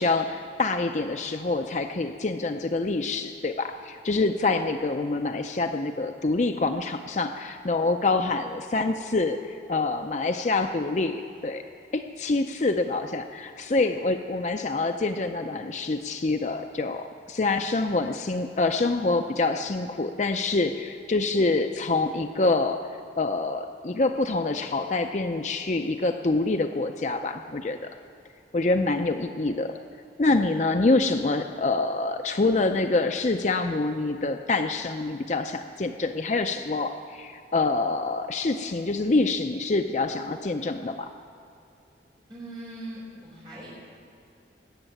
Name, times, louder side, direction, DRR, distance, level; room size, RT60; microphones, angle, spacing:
voice 1, 0.0-11.6 11.9-22.8 23.2-27.8 28.5-29.7 30.2-41.1, left 3 dB, 40° left, 6 dB, 0.5 m, -26 dB
voice 2, 42.3-43.7, right 1 dB, 30° right, -9 dB, 4.9 m, -40 dB
18.5 x 7.3 x 9.0 m, 2.6 s
head